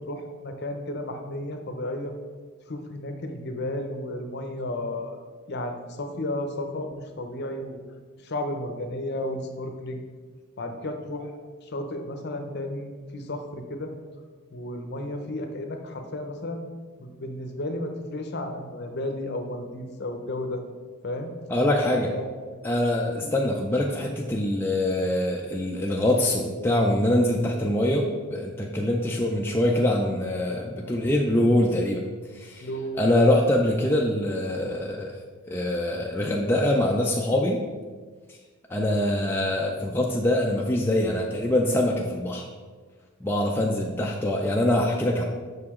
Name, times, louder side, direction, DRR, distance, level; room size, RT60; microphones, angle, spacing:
voice 1, 0.1-2.1 2.7-5.2 5.5-7.8 8.2-10.0 10.6-11.4 11.6-13.9 14.5-16.7 17.0-20.6 21.0-21.3 22.1-22.5 23.2-23.3 30.8-31.1 32.6-33.1 43.6-43.8, left 1 dB, 50° left, 5 dB, 0.6 m, -33 dB
voice 2, 21.5-22.1 22.6-32.0 32.3-32.7 33.0-35.1 35.5-37.6 38.7-42.5 43.2-45.2, left 1 dB, 10° left, -1 dB, 0.3 m, -24 dB
6.3 x 4.9 x 3.6 m, 1.5 s
head